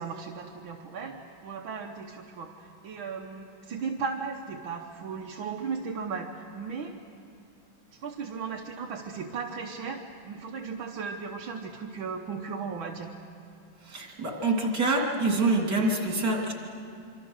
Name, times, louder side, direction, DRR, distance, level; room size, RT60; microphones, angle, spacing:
voice 1, 0.0-7.0 7.9-13.1, right 5 dB, 80° right, 1 dB, 1.8 m, -36 dB
voice 2, 13.8-16.5, right 2 dB, 55° right, 0 dB, 3.6 m, -26 dB
26.0 x 25.0 x 6.4 m, 2.4 s
omnidirectional pair, 2.2 m